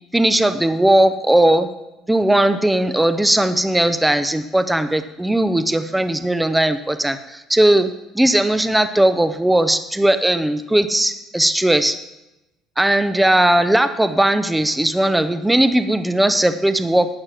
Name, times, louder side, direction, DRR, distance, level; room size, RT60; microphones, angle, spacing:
voice 1, 0.1-1.7 2.1-7.9 8.1-11.9 12.8-17.1, right 1 dB, 5° right, 10 dB, 0.6 m, -17 dB
11.5 x 8.6 x 5.8 m, 0.95 s
cardioid pair, 130°, 0 cm